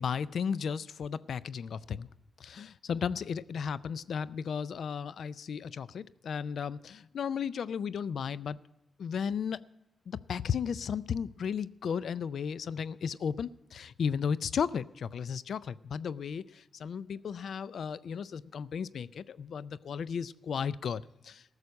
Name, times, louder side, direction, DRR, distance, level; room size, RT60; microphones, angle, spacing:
voice 1, 0.0-2.1 2.4-8.6 9.0-9.7 10.1-21.4, left 7 dB, 70° left, 18 dB, 0.4 m, -34 dB
14.5 x 6.6 x 8.2 m, 0.92 s
cardioid pair, 75°, 0 cm